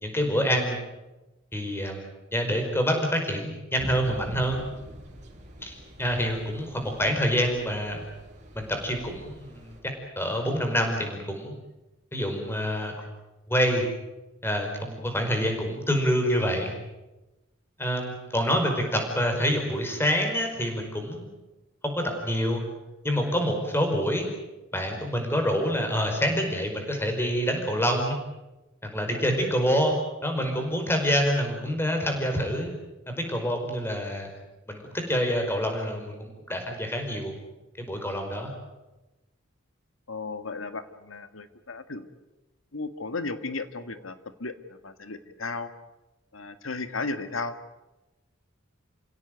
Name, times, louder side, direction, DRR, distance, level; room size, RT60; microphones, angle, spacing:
voice 1, 0.0-0.8 1.5-4.6 5.6-8.0 8.5-9.7 10.1-11.6 12.1-12.9 13.5-13.8 14.4-16.7 17.8-21.3 21.8-22.6 23.0-24.3 24.7-28.2 28.8-30.0 30.2-32.7 33.1-34.3 34.7-37.3 37.8-38.5, equal, 10° left, 3 dB, 5.0 m, -27 dB
sound 1, 3.8-9.8, equal, 35° right, 5.6 m, -45 dB
voice 2, 40.1-42.1 42.7-44.2 44.4-44.5 44.8-45.7 46.3-47.6, left 3 dB, 80° left, 10 dB, 1.8 m, -34 dB
28.5 x 17.0 x 9.3 m, 1.0 s
head